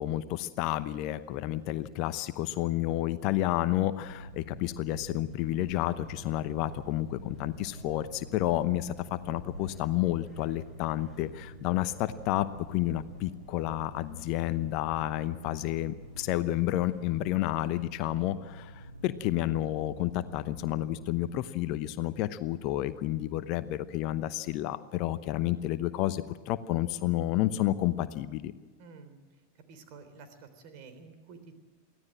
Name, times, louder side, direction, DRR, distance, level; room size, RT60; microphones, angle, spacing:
voice 1, 0.0-28.5, left 14 dB, 40° left, 14 dB, 0.8 m, -30 dB
Boat Water vehicle, 4.0-21.4, right 1 dB, 85° right, 1.9 m, -48 dB
sound 1, 5.3-17.9, right 1 dB, 15° right, 4.6 m, -57 dB
voice 2, 28.8-29.2 29.7-31.6, right 4 dB, 45° right, 8 dB, 3.6 m, -50 dB
24.0 x 16.0 x 7.6 m, 1.3 s
figure-of-eight pair, 90°, 0 cm